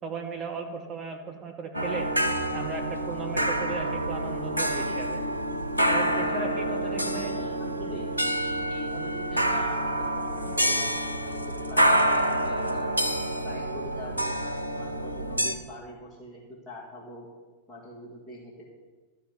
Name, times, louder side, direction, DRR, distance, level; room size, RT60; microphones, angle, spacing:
voice 1, 0.0-2.1 2.5-5.2 5.9-7.3, right 5 dB, 30° right, 2 dB, 1.8 m, -36 dB
sound 1, 1.7-15.5, right 1 dB, 85° left, 0.7 m, -27 dB
voice 2, 7.2-8.1 8.7-12.9 13.4-14.4 14.8-17.3 17.7-18.6, left 1 dB, 15° left, -8 dB, 2.5 m, -43 dB
12.5 x 4.9 x 8.4 m, 1.3 s
figure-of-eight pair, 90°, 0 cm